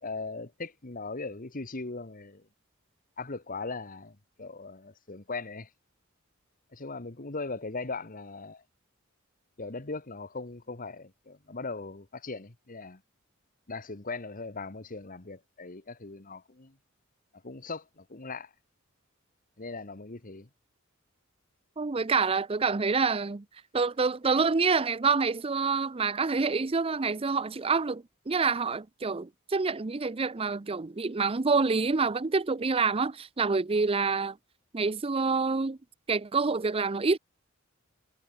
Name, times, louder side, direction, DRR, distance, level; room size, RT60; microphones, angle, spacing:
voice 1, 0.0-2.5 3.2-5.7 6.7-8.6 9.6-13.0 13.7-16.7 17.4-18.5 19.6-20.5, left 3 dB, 40° left, 1.5 m, -39 dB
voice 2, 21.8-23.4 23.7-34.4 34.7-35.8 36.1-37.2, right 4 dB, 25° right, 0.6 m, -27 dB
head